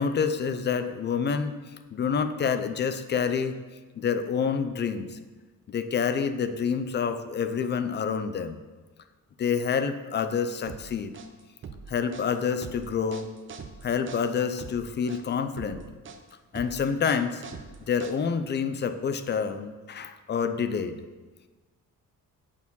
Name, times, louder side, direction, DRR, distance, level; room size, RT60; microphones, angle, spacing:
voice 1, 0.0-1.6 1.9-3.5 4.0-5.2 5.7-8.6 9.4-11.1 11.9-13.3 13.8-15.8 16.5-17.4 17.9-21.0, left 6 dB, 30° left, 10 dB, 0.4 m, -28 dB
sound 1, 10.7-18.5, right 5 dB, 35° right, 0.6 m, -43 dB
8.3 x 4.6 x 5.4 m, 1.3 s
cardioid pair, 165°, 36 cm